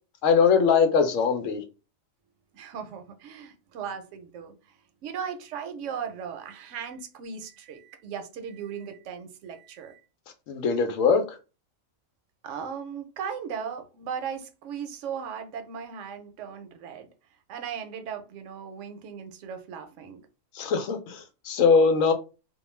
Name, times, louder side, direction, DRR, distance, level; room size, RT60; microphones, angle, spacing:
voice 1, 0.2-1.6 10.5-11.4 20.5-22.1, left 5 dB, 80° left, 1.0 m, -21 dB
voice 2, 2.5-4.5 5.0-10.0 12.4-17.1 17.5-20.2, right 7 dB, 70° right, 0.8 m, -37 dB
2.4 x 2.2 x 3.0 m
omnidirectional pair, 1.4 m